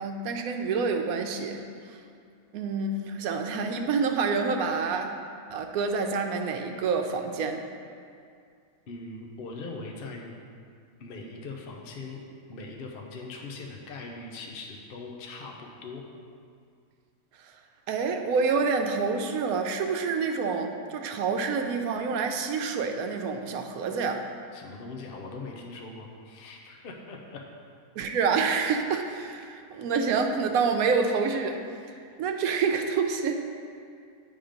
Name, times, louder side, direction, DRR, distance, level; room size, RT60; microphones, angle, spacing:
voice 1, 0.0-1.6 2.5-5.2 5.5-7.6 17.9-24.2 28.0-31.6 32.2-33.4, right 5 dB, 85° right, 4 dB, 1.1 m, -27 dB
voice 2, 8.9-10.3 11.0-12.2 12.5-16.0 24.5-27.4, left 3 dB, 50° left, 1 dB, 0.8 m, -41 dB
8.8 x 3.6 x 5.1 m, 2.3 s
omnidirectional pair, 1.5 m